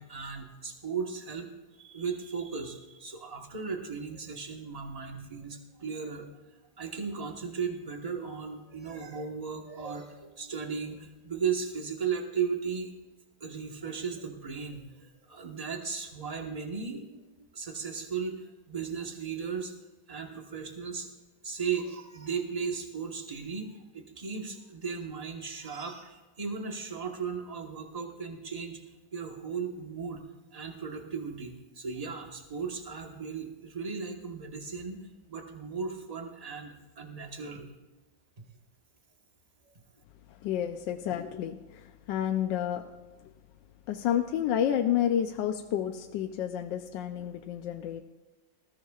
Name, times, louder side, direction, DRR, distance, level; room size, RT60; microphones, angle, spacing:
voice 1, 0.0-6.3 6.8-12.9 13.4-19.7 20.1-21.1 21.4-28.8 29.1-30.2 30.5-37.7, right 6 dB, 25° right, 3 dB, 1.1 m, -36 dB
voice 2, 40.3-42.9 43.9-48.0, left 10 dB, 75° left, 6 dB, 1.3 m, -30 dB
19.5 x 14.5 x 2.4 m, 1.1 s
omnidirectional pair, 2.1 m